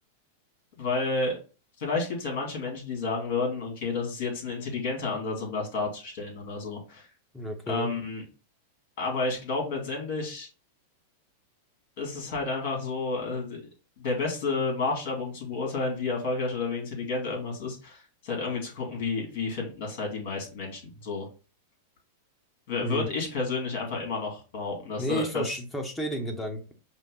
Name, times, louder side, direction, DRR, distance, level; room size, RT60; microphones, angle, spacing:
voice 1, 0.8-1.4 1.8-7.1 7.7-8.2 9.0-10.5 12.0-13.6 14.0-21.3 22.7-25.5, left 3 dB, 60° left, 0 dB, 2.2 m, -31 dB
voice 2, 7.3-7.9 22.8-23.1 25.0-26.7, right 1 dB, 10° left, 4 dB, 1.1 m, -32 dB
5.3 x 2.3 x 3.8 m, 0.34 s
hypercardioid pair, 105°, 0 cm